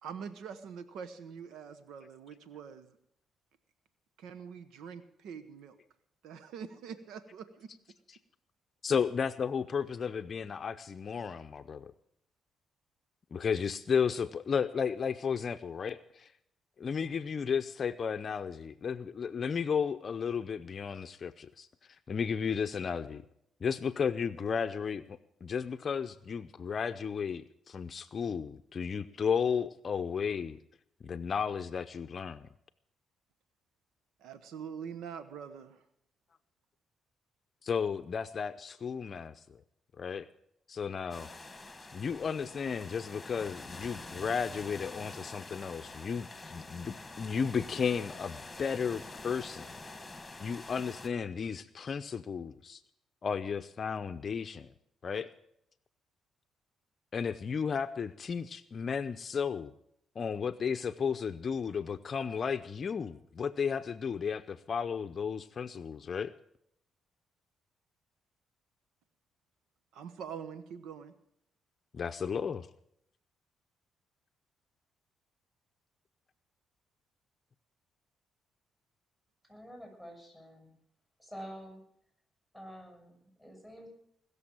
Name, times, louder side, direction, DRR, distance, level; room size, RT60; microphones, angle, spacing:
voice 1, 0.0-3.0 4.2-5.8 6.2-7.7 34.2-35.8 69.9-71.1, right 7 dB, 85° right, 12 dB, 1.0 m, -44 dB
voice 2, 8.8-11.9 13.3-16.3 16.8-21.7 22.1-23.2 23.6-30.6 31.0-32.5 37.6-39.6 40.0-40.3 40.7-41.3 41.9-49.8 50.4-52.8 53.2-54.7 55.0-55.3 57.1-59.7 60.2-66.3 71.9-72.7, left 6 dB, 45° left, 10 dB, 0.6 m, -34 dB
sound 1, 41.1-51.1, left 3 dB, 15° left, 1.9 m, -46 dB
voice 3, 79.5-80.8 81.2-81.8 82.5-83.9, equal, 10° right, 2 dB, 7.2 m, -48 dB
20.5 x 6.9 x 8.8 m, 0.72 s
cardioid pair, 90°, 0 cm